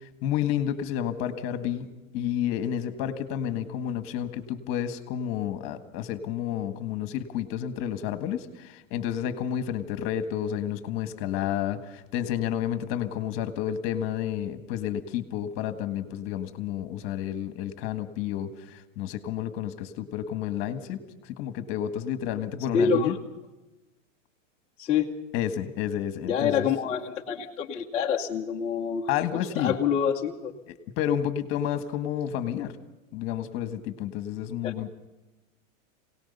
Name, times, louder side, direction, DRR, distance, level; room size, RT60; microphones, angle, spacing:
voice 1, 0.2-1.9 2.1-23.1 25.3-26.7 29.1-29.7 30.7-32.7 33.1-34.9, left 10 dB, 35° left, 10 dB, 1.6 m, -30 dB
voice 2, 22.7-23.1 24.8-25.1 26.2-29.1 29.6-30.5 34.6-34.7, left 7 dB, 15° left, -3 dB, 1.0 m, -26 dB
26.0 x 18.5 x 5.5 m, 1.0 s
supercardioid pair, 165°, 38 cm